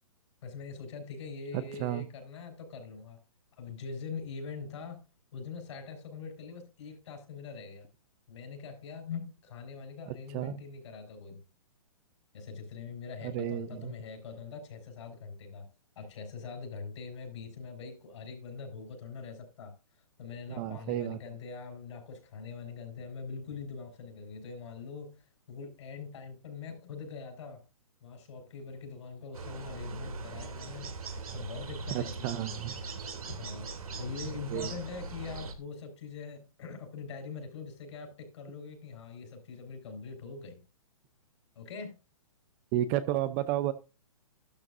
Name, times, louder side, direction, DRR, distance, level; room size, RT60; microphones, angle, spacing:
voice 1, 0.4-3.2 3.5-5.0 5.3-7.9 8.3-11.4 12.3-15.7 15.9-19.7 20.2-27.6 28.0-31.0 31.3-32.5 33.3-40.6 41.5-41.9, left 5 dB, 55° left, 5.1 m, -43 dB
voice 2, 1.7-2.1 10.1-10.5 13.2-13.9 20.6-21.2 31.9-32.8 34.5-34.7 42.7-43.7, right 13 dB, 25° right, 0.6 m, -32 dB
sound 1, 29.3-35.5, right 4 dB, 80° right, 2.9 m, -40 dB
12.5 x 12.5 x 2.6 m
hypercardioid pair, 150°, 18 cm